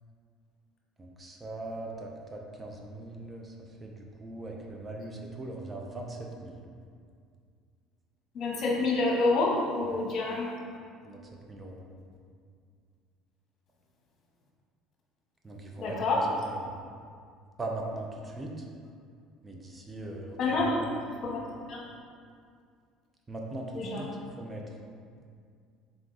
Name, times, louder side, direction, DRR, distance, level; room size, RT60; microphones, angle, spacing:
voice 1, 1.0-3.5 3.8-6.7 9.8-10.0 11.0-11.8 15.4-16.2 16.5-16.8 17.6-18.7 19.4-20.9 23.3-24.6, right 2 dB, 25° right, 0 dB, 0.7 m, -40 dB
voice 2, 8.3-10.6 15.8-16.2 20.4-20.8 21.2-21.4 21.7-21.8 23.7-24.0, left 3 dB, 50° left, -2 dB, 1.0 m, -27 dB
3.6 x 3.5 x 3.9 m, 2.2 s
hypercardioid pair, 65°, 0 cm